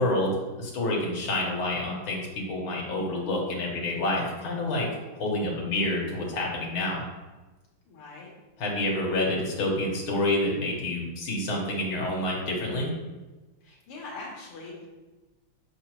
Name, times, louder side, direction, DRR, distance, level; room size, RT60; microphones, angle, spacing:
voice 1, 0.0-7.0 8.6-12.9, left 1 dB, 70° left, -3 dB, 2.1 m, -28 dB
voice 2, 7.9-8.3 13.6-14.9, left 3 dB, 85° left, -2 dB, 2.0 m, -42 dB
6.2 x 6.2 x 3.0 m, 1.2 s
omnidirectional pair, 2.4 m